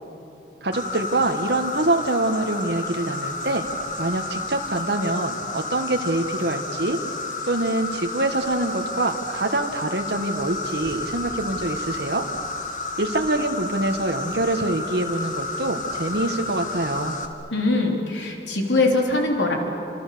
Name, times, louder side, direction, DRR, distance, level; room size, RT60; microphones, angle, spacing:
voice 1, 0.6-3.6 4.0-7.0 7.4-12.2 13.0-17.2, right 2 dB, 65° right, 4 dB, 1.5 m, -25 dB
Insect, 0.7-17.3, left 2 dB, 45° left, 1.9 m, -31 dB
voice 2, 17.5-19.5, left 2 dB, 80° left, 1 dB, 3.7 m, -22 dB
28.5 x 27.0 x 6.9 m, 2.8 s
head